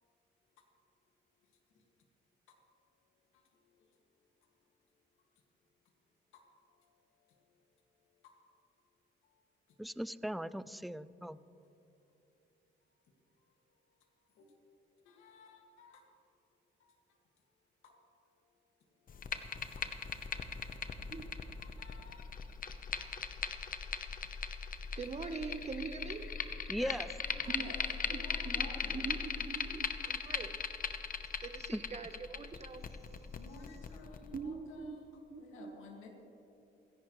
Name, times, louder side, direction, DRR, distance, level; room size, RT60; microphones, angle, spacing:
voice 1, 9.8-11.4 26.7-27.1 31.7-31.8, equal, ahead, 16 dB, 0.3 m, -38 dB
voice 2, 15.0-16.0 16.8-16.9 17.8-18.0 21.1-22.2 22.9-23.0 24.6-24.9 26.8-27.0 27.2-29.1 31.9-32.0 33.3-36.1, left 3 dB, 90° left, 1 dB, 2.1 m, -53 dB
sound 1, 19.1-34.4, left 6 dB, 45° left, 0.9 m, -39 dB
voice 3, 24.9-26.3 27.5-27.7 28.1-30.6 31.4-33.1 34.3-35.0 35.3-35.7, right 4 dB, 35° right, 8 dB, 1.1 m, -43 dB
29.5 x 11.0 x 3.2 m, 2.8 s
cardioid pair, 90°, 20 cm